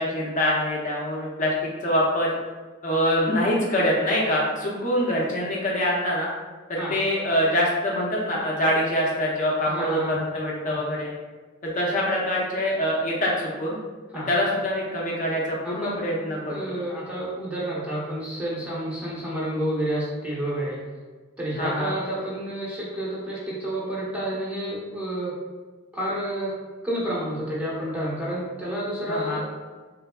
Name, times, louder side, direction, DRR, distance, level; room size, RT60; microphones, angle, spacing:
voice 1, 0.0-2.3 2.8-6.3 6.7-11.1 11.6-13.8 14.3-16.7 21.6-22.0 29.1-29.4, equal, 45° left, -4 dB, 0.6 m, -24 dB
voice 2, 9.7-10.2 10.7-10.8 14.1-14.3 15.6-15.9 16.5-20.8 21.4-25.4 25.9-29.5, right 1 dB, 5° right, -7 dB, 0.9 m, -30 dB
3.4 x 3.3 x 2.2 m, 1.4 s
head